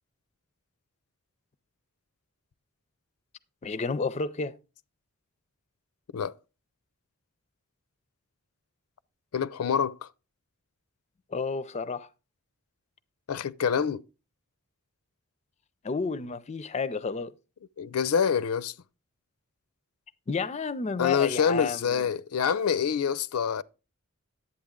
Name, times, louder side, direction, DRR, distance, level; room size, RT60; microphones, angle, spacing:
voice 1, 3.6-4.6 11.3-12.1 15.8-17.3 20.3-22.0, left 4 dB, 30° left, 0.4 m, -31 dB
voice 2, 9.3-10.1 13.3-14.0 17.8-18.7 21.0-23.6, left 7 dB, 85° left, 0.5 m, -26 dB
11.5 x 8.5 x 3.6 m
head